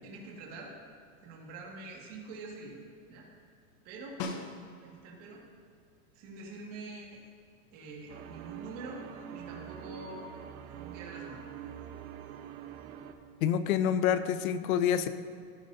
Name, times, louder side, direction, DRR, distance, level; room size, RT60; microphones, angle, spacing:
voice 1, 0.0-0.8 1.2-2.8 3.1-3.3 3.8-4.2 4.8-5.4 6.1-7.2 7.7-10.3 10.7-11.4, right 2 dB, 35° right, -3 dB, 2.0 m, -45 dB
Snare drum, 4.2-5.1 9.6-9.7, left 3 dB, 40° left, 0.8 m, -39 dB
sound 1, 8.1-13.1, right 10 dB, 85° right, 1.0 m, -45 dB
voice 2, 13.4-15.1, left 9 dB, 80° left, 12 dB, 0.8 m, -27 dB
16.5 x 9.3 x 2.7 m, 2.3 s
supercardioid pair, 175°, 42 cm